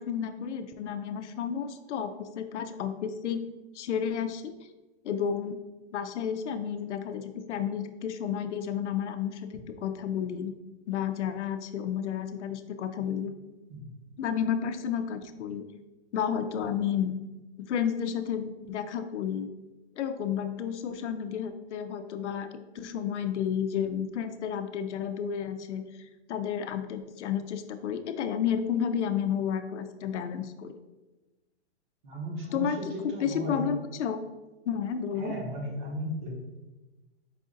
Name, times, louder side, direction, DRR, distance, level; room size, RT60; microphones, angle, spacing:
voice 1, 0.0-3.4 3.7-4.5 5.0-5.6 5.9-9.5 9.8-10.5 10.9-13.3 14.2-15.6 16.1-17.1 17.7-19.5 20.0-22.5 22.7-25.8 26.3-30.8 32.5-32.8 33.2-34.2 34.7-35.3, left 8 dB, 90° left, 8 dB, 0.5 m, -31 dB
voice 2, 32.0-33.7 35.2-36.4, equal, 45° right, -1 dB, 1.2 m, -35 dB
4.8 x 2.5 x 3.8 m, 1.1 s
hypercardioid pair, 170°, 34 cm